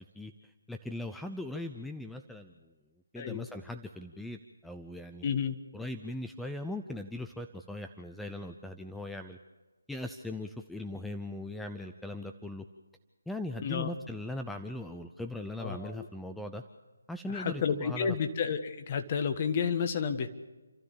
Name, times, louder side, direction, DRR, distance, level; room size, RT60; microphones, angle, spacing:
voice 1, 0.1-2.7 3.1-5.2 5.7-9.4 9.9-12.6 13.3-16.6 17.1-18.2, left 1 dB, ahead, 6 dB, 0.6 m, -39 dB
voice 2, 3.1-3.5 5.2-5.5 13.6-13.9 15.6-16.1 17.3-20.3, left 6 dB, 35° left, 8 dB, 1.5 m, -31 dB
29.5 x 13.0 x 7.1 m, 1.2 s
figure-of-eight pair, 150°, 0 cm